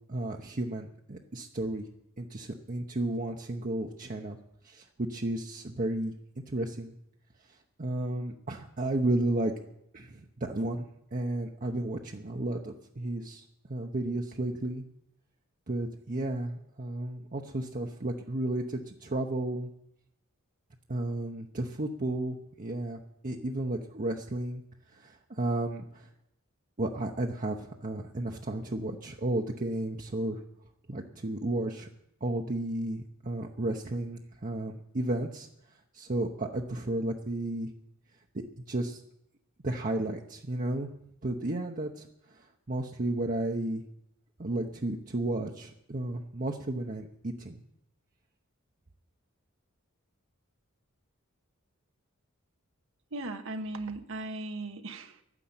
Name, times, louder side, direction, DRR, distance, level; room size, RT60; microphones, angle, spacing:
voice 1, 0.1-1.8 2.2-4.4 4.6-6.1 6.5-6.9 7.8-9.5 9.9-14.8 15.7-19.7 20.9-24.6 24.9-26.1 26.8-30.4 30.9-31.9 32.2-35.5 35.9-37.7 38.3-39.0 39.6-40.9 41.2-43.8 44.4-47.6, right 1 dB, 40° right, 1 dB, 0.9 m, -33 dB
voice 2, 53.1-55.2, right 2 dB, 65° right, 6 dB, 1.1 m, -37 dB
11.5 x 9.9 x 8.8 m, 0.79 s
head